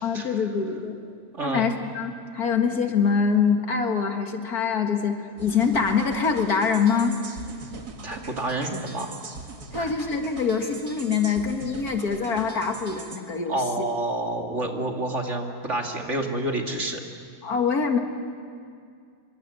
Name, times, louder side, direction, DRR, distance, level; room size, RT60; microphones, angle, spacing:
voice 1, 0.0-1.0 1.4-7.2 9.7-13.6 17.4-18.0, left 6 dB, 60° left, 4 dB, 2.3 m, -24 dB
sound 1, 5.4-13.2, right 3 dB, 65° right, 2.4 m, -41 dB
voice 2, 8.0-9.1 9.7-9.9 13.5-17.0, right 2 dB, 45° right, 2 dB, 2.4 m, -28 dB
26.5 x 24.5 x 7.8 m, 2.3 s
omnidirectional pair, 1.8 m